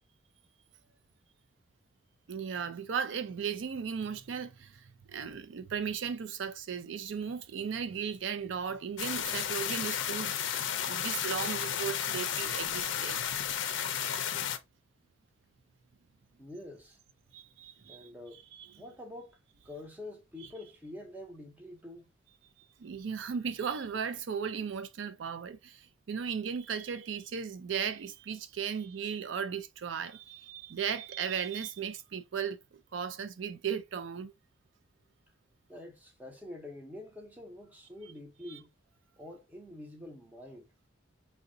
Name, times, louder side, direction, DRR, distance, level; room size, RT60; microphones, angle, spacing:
voice 1, 2.3-10.4 10.9-13.2 17.3-18.1 18.5-18.8 22.8-34.3 38.5-38.6, right 7 dB, 70° right, 0.4 m, -36 dB
sound 1, 9.0-14.6, left 9 dB, 75° left, 0.4 m, -33 dB
voice 2, 16.4-17.0 17.9-18.4 18.8-19.4 19.6-22.1 35.7-38.7 39.2-40.7, left 1 dB, 10° right, 0.6 m, -46 dB
3.7 x 2.1 x 2.5 m
head